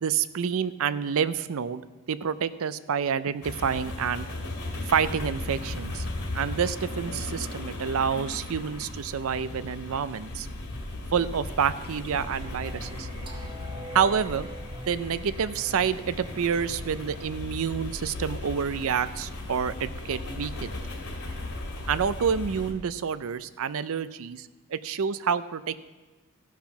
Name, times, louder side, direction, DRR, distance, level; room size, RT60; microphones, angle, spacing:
voice 1, 0.0-1.8 2.1-4.3 4.9-6.1 6.3-10.5 11.1-13.1 13.9-14.5 14.9-20.8 21.9-25.8, right 7 dB, 65° right, 15 dB, 0.5 m, -28 dB
sound 1, 3.4-22.7, left 2 dB, 90° left, 2.1 m, -36 dB
Singing, 12.3-17.3, equal, 20° right, 1.0 m, -44 dB
15.0 x 5.9 x 5.8 m, 1.2 s
head